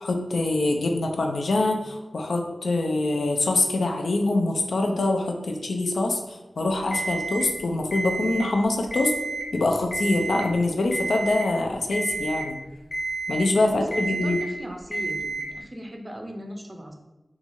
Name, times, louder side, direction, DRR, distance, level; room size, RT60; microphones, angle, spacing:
voice 1, 0.0-9.1 9.5-12.6 13.3-14.4, left 2 dB, 90° left, 3 dB, 0.3 m, -24 dB
Alarm, 6.9-7.5 7.9-8.5 8.8-9.5 9.9-10.5 10.9-11.5 11.9-12.5 12.9-13.5 13.9-14.5 14.9-15.5, right 3 dB, 45° left, 0.6 m, -30 dB
voice 2, 13.7-17.0, equal, 30° right, 3 dB, 0.4 m, -38 dB
3.0 x 2.3 x 2.5 m, 1.1 s
wide cardioid pair, 65°, 0 cm